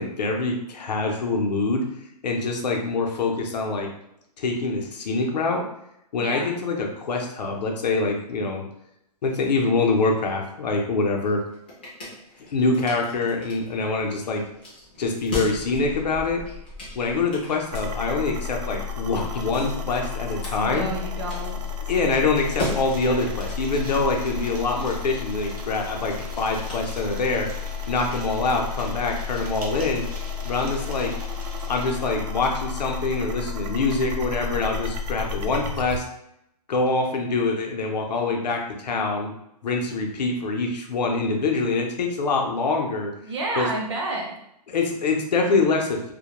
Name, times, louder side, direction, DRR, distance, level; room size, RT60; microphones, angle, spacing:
voice 1, 0.0-1.8 2.2-3.9 4.4-5.6 6.1-8.6 9.2-11.4 12.5-14.4 15.0-16.4 16.9-20.9 21.9-27.5 27.9-30.0 30.4-31.1 31.7-36.0 36.7-39.3 39.6-43.1 43.6-43.7 44.7-46.1, left 3 dB, 80° left, 2 dB, 0.6 m, -25 dB
voice 2, 6.2-6.5 20.5-21.6 43.2-44.4, right 2 dB, 45° right, 0 dB, 0.5 m, -30 dB
sound 1, 11.3-27.5, left 1 dB, 15° left, 0.3 m, -40 dB
sound 2, 17.7-36.0, left 5 dB, 85° right, 0.5 m, -32 dB
sound 3, 22.3-31.9, right 1 dB, 65° right, 0.9 m, -43 dB
2.2 x 2.1 x 2.9 m, 0.80 s
hypercardioid pair, 175°, 21 cm